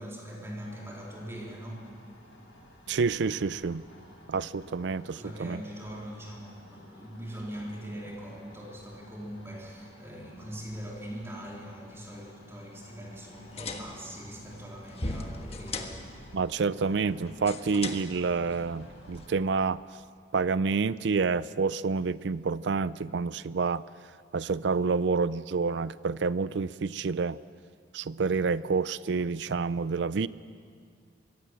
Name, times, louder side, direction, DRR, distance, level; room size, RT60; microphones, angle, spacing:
voice 1, 0.0-1.9 5.1-16.0, equal, 15° right, -2 dB, 3.7 m, -42 dB
sound 1, 0.5-19.4, left 1 dB, 85° left, 6.2 m, -53 dB
voice 2, 2.9-3.8 4.3-5.6 16.3-19.8 20.3-23.8 24.3-27.4 27.9-30.3, right 4 dB, 70° right, 17 dB, 0.4 m, -28 dB
sound 2, 13.3-19.3, left 2 dB, 35° left, 1.4 m, -40 dB
24.0 x 16.0 x 7.7 m, 2.1 s
head